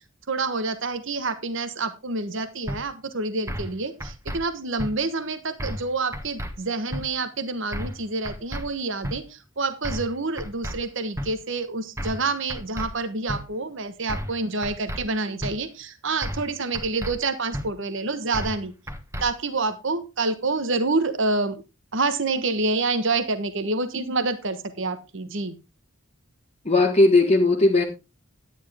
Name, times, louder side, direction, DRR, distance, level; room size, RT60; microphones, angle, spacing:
voice 1, 0.3-18.7 19.2-21.6 21.9-25.6, right 3 dB, 65° right, 11 dB, 1.3 m, -27 dB
sound 1, 2.7-2.8 3.5-3.7 4.0-4.4 4.8-4.9 5.6-5.9 6.1-6.5 6.9-7.0 7.7-8.0 8.2-8.6 9.0-9.2 9.8-10.1 10.4-10.8 11.2-11.3 12.0-12.2 12.5-12.9 13.3-13.4 14.1-14.4 14.6-15.0 15.4-15.5 16.2-16.5 16.7-17.1 17.5-17.7 18.3-18.6 18.9-19.3, equal, 15° right, 1.4 m, -31 dB
voice 2, 26.6-27.9, left 2 dB, 30° left, 1 dB, 1.6 m, -17 dB
11.5 x 10.0 x 3.5 m, 0.27 s
head